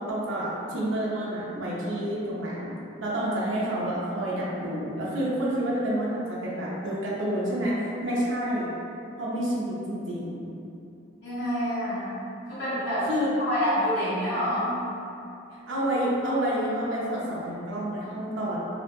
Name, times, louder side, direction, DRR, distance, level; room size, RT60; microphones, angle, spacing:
voice 1, 0.0-2.7 3.0-8.7 9.2-10.5 13.0-13.3 15.7-18.6, right 1 dB, 85° right, -7 dB, 0.6 m, -29 dB
voice 2, 11.2-12.2 12.5-13.1 13.5-14.8, equal, 65° left, -13 dB, 1.3 m, -27 dB
2.8 x 2.1 x 2.9 m, 2.7 s
head